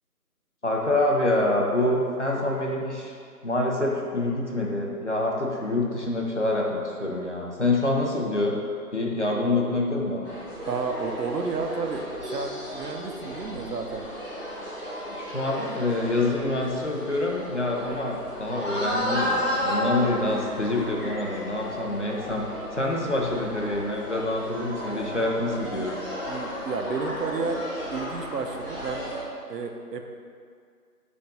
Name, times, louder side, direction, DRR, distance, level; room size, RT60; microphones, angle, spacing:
voice 1, 0.6-3.1 3.4-8.5 8.9-10.3 15.2-22.4 22.7-25.9, left 2 dB, 50° left, -1 dB, 0.5 m, -26 dB
sound 1, 10.2-29.2, equal, 35° right, 0.6 m, -33 dB
voice 2, 10.7-14.1 25.1-25.3 26.2-27.6 27.9-29.1 29.5-30.1, right 4 dB, 85° right, 4 dB, 0.6 m, -31 dB
4.4 x 2.5 x 3.9 m, 2.2 s
figure-of-eight pair, 165°, 48 cm